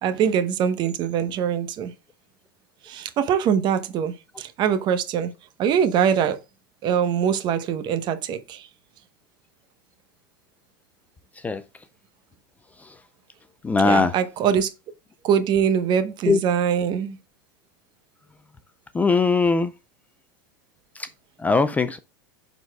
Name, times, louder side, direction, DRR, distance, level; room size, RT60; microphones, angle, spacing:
voice 1, 0.0-1.9 2.8-5.3 5.6-6.4 6.8-8.7 13.8-14.7 15.2-17.2, right 8 dB, 40° right, 0.9 m, -23 dB
voice 2, 13.6-14.2 16.3-16.4 18.9-19.7 21.0-21.1 21.4-22.0, left 4 dB, 15° left, 0.4 m, -20 dB
10.5 x 4.1 x 2.2 m
hypercardioid pair, 105°, 11 cm